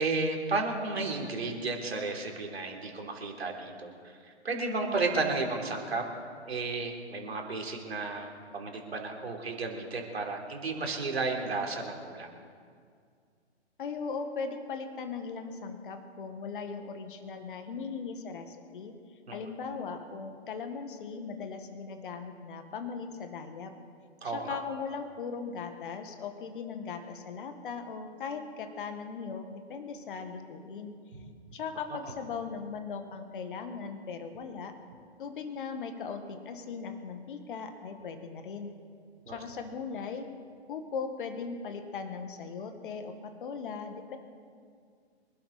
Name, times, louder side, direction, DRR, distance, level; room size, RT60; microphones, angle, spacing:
voice 1, 0.0-4.1 4.4-6.1 6.5-12.3 19.3-19.4 24.2-24.6 39.3-39.4, right 3 dB, 70° right, 2 dB, 3.6 m, -33 dB
voice 2, 13.8-18.9 19.3-23.7 24.2-30.9 31.5-34.7 35.2-38.7 39.3-40.3 40.7-44.2, left 5 dB, 50° left, 7 dB, 1.8 m, -38 dB
25.0 x 11.5 x 4.3 m, 2.2 s
figure-of-eight pair, 125°, 33 cm